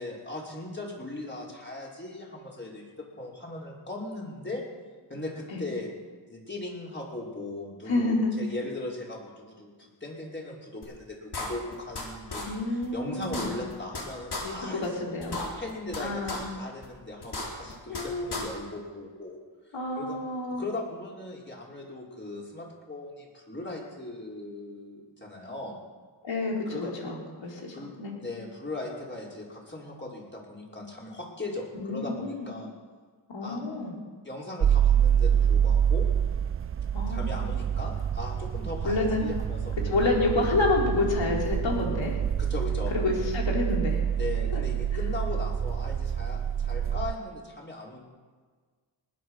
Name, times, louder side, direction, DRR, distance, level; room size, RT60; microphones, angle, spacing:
voice 1, 0.0-4.6 5.1-5.9 6.3-14.9 15.5-19.4 20.0-20.2 20.5-25.8 26.7-26.9 27.7-27.9 28.2-32.7 33.4-33.6 34.2-36.1 37.1-40.0 42.4-42.9 44.2-48.0, left 2 dB, 25° left, -3 dB, 5.2 m, -38 dB
voice 2, 7.9-8.5 12.4-13.6 14.4-15.4 16.0-16.4 17.9-18.4 19.7-20.6 26.2-28.2 31.7-32.5 33.3-33.9 36.9-37.3 38.8-39.2 39.8-42.2 42.9-44.0 44.5-44.6, left 2 dB, 80° left, -1 dB, 3.9 m, -29 dB
sound 1, 10.8-10.9 11.3-12.0 12.3-12.4 12.8-12.9 13.2-14.0 14.3-14.4 14.8-14.9 15.2-16.0 16.3-16.4 16.8-16.9 17.2-18.0 18.3-18.4, left 3 dB, 60° left, 4.4 m, -34 dB
sound 2, 34.6-47.1, right 8 dB, 30° right, 0.4 m, -27 dB
19.5 x 9.7 x 6.4 m, 1.5 s
cardioid pair, 60°, 45 cm